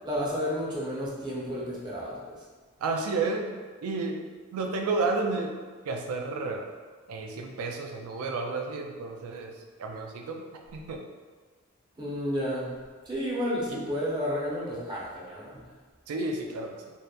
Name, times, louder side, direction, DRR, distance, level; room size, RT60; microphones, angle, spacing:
voice 1, 0.0-2.4 12.0-12.8 13.1-15.6, equal, 20° right, -5 dB, 0.4 m, -31 dB
voice 2, 2.8-3.5 3.8-4.2 4.5-5.6 5.8-6.7 7.1-9.5 9.8-10.4 10.7-11.0 13.7-13.8 16.1-16.9, right 3 dB, 85° right, 3 dB, 0.3 m, -31 dB
2.8 x 2.0 x 2.2 m, 1.4 s
head